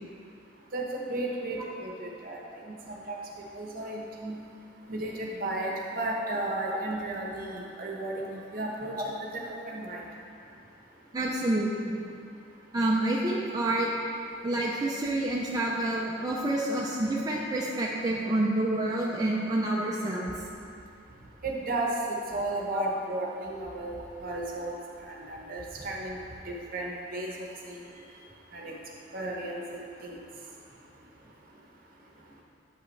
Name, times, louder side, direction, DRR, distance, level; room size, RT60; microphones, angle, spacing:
voice 1, 0.7-2.4 2.7-2.8 3.1-3.2 3.5-4.3 4.9-8.9 9.3-10.0 21.4-23.9 24.2-24.8 25.0-26.2 26.5-27.3 27.7-27.8 28.5-28.7 29.1-30.2, right 2 dB, 50° right, -2 dB, 1.0 m, -34 dB
voice 2, 11.1-12.0 12.7-13.9 14.4-20.3 22.7-22.8, right 1 dB, 20° right, -4 dB, 0.5 m, -28 dB
7.9 x 5.7 x 3.2 m, 2.4 s
head